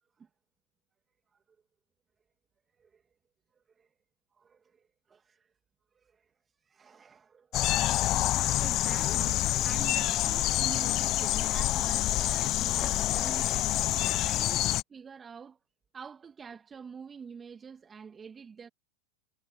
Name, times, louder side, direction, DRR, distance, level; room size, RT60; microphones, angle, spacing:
voice 1, 3.5-3.9 4.3-5.5 5.9-6.3 6.6-8.0 8.6-13.8 14.2-15.6 15.9-18.7, right 6 dB, 20° right, 2.1 m, -47 dB
sound 1, 7.5-14.8, left 15 dB, 40° left, 1.1 m, -27 dB
hypercardioid pair, 95°, 0 cm